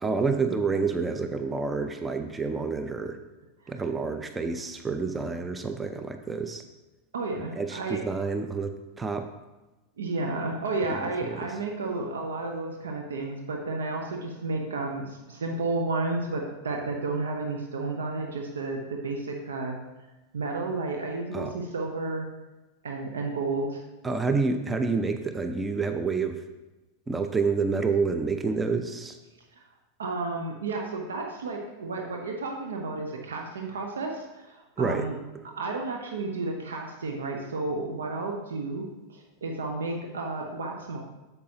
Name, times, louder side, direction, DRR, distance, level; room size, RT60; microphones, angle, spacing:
voice 1, 0.0-3.2 3.7-6.6 7.6-9.3 10.9-11.4 21.3-21.5 24.0-26.4 27.1-29.2 34.8-35.1, right 4 dB, 15° right, 7 dB, 0.6 m, -28 dB
voice 2, 7.1-8.0 10.0-19.8 20.3-22.3 22.8-23.8 29.6-29.7 30.0-35.2 35.6-41.0, right 3 dB, 70° right, 2 dB, 0.9 m, -32 dB
8.4 x 6.9 x 2.9 m, 1.1 s
figure-of-eight pair, 90°, 0 cm